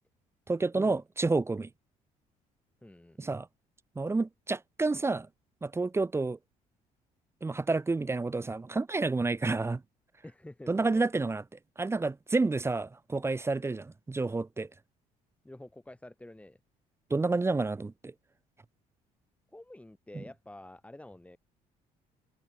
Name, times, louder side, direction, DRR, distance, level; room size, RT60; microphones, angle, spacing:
voice 1, 0.5-1.7 3.2-3.5 4.0-5.3 5.6-6.4 7.4-9.8 10.7-11.4 11.8-14.7 17.1-18.1 20.1-20.2, right 3 dB, 15° right, 0.8 m, -29 dB
voice 2, 2.8-3.2 10.2-11.0 15.4-16.6 19.5-21.4, left 1 dB, 10° left, 7.0 m, -48 dB
cardioid pair, 95°, 15 cm